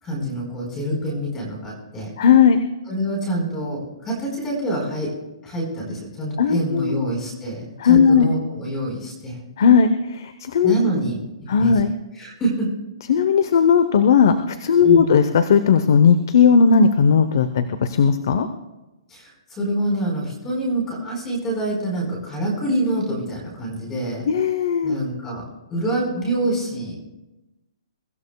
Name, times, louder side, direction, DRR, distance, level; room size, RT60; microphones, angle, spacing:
voice 1, 0.0-2.1 2.9-5.1 5.4-9.4 10.6-11.2 11.6-11.7 12.1-12.7 14.8-15.1 19.1-19.3 19.6-24.3 24.8-27.0, right 1 dB, 10° left, -1 dB, 4.6 m, -26 dB
voice 2, 2.2-2.6 6.4-7.0 7.8-8.3 9.6-10.7 11.5-11.9 13.1-18.5 24.3-25.0, left 6 dB, 45° left, 10 dB, 0.8 m, -16 dB
23.0 x 14.5 x 2.3 m, 1.0 s
hypercardioid pair, 175°, 3 cm